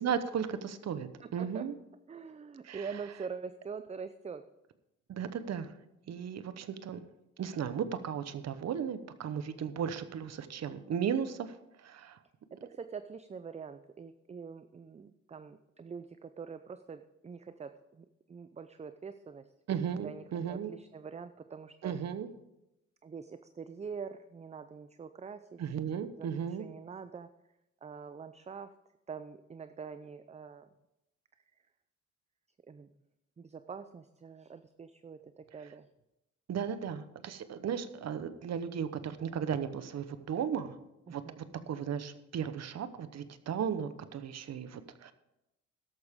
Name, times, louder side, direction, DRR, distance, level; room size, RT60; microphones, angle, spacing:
voice 1, 0.0-1.7 2.6-2.9 5.1-5.7 6.1-7.0 7.4-12.2 19.7-20.7 21.8-22.3 25.6-26.6 36.5-40.7 41.1-45.1, right 8 dB, 60° right, 11 dB, 1.0 m, -35 dB
voice 2, 1.2-1.7 2.1-4.4 12.5-19.5 20.0-22.0 23.0-25.6 26.2-26.3 26.6-27.3 27.8-28.7 29.1-30.7 32.7-32.9 33.4-35.9 37.2-37.3 41.1-41.4, right 5 dB, 20° right, 10 dB, 0.5 m, -44 dB
13.5 x 11.5 x 3.7 m, 0.90 s
cardioid pair, 90°, 30 cm